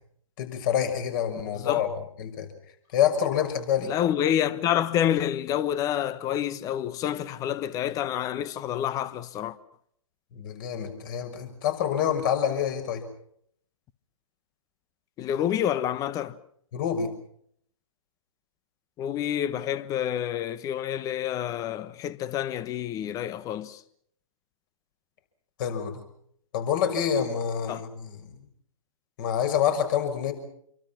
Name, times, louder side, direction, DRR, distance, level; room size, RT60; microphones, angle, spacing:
voice 1, 0.4-1.9 2.2-2.5 2.9-3.9 10.3-13.0 16.7-17.1 25.6-26.0 26.5-28.3 29.2-30.3, left 9 dB, 40° left, 6.2 m, -27 dB
voice 2, 3.8-9.6 15.2-16.4 19.0-23.8 27.7-27.8, left 10 dB, 20° left, 1.3 m, -28 dB
28.0 x 23.5 x 6.0 m
figure-of-eight pair, 130°, 18 cm